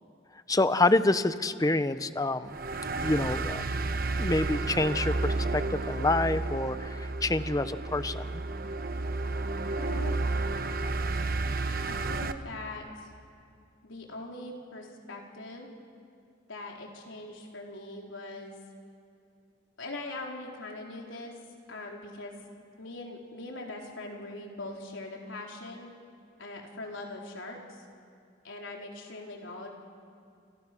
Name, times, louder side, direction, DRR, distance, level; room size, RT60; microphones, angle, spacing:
voice 1, 0.5-2.6 3.0-3.6 4.2-8.4, left 2 dB, 20° left, 12 dB, 0.8 m, -27 dB
sound 1, 2.5-12.3, right 2 dB, 50° right, 1.1 m, -31 dB
voice 2, 9.7-10.3 11.9-13.1 13.8-15.7 16.5-18.5 19.8-21.3 21.7-22.4 22.8-25.9 26.4-27.8 28.4-29.7, left 2 dB, 90° left, 0 dB, 4.4 m, -41 dB
29.0 x 26.5 x 6.2 m, 2.3 s
head